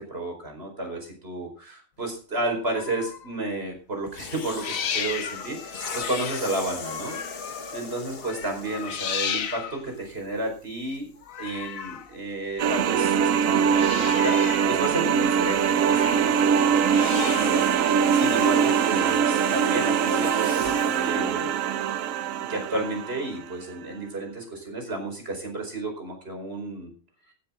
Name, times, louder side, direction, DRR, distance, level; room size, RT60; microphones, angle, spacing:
voice 1, 0.1-11.1 11.4-17.6 18.2-21.6 22.3-26.9, right 2 dB, 50° right, 2 dB, 5.1 m, -32 dB
sound 1, 2.6-3.4 4.4-7.9 8.2-10.0 11.2-12.1 13.2-14.8 15.1-16.3 16.6-17.8 18.8-19.3, left 7 dB, 90° left, 1.5 m, -35 dB
sound 2, 4.1-9.6 10.4-10.6 14.6-21.3, left 4 dB, 50° left, 1.4 m, -39 dB
sound 3, 12.6-23.4, right 8 dB, 80° right, 1.1 m, -22 dB
15.0 x 11.5 x 3.7 m, 0.37 s
omnidirectional pair, 1.4 m